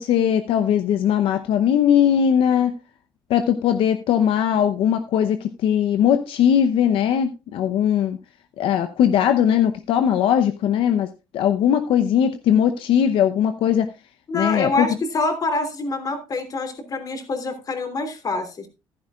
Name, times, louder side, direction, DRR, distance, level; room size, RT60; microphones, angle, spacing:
voice 1, 0.0-2.7 3.3-8.2 8.6-11.1 11.3-13.9 14.3-14.9, left 9 dB, 80° left, 9 dB, 0.8 m, -19 dB
voice 2, 14.3-18.7, left 3 dB, 40° left, 7 dB, 2.9 m, -26 dB
14.5 x 11.5 x 2.4 m, 0.27 s
cardioid pair, 105°, 9 cm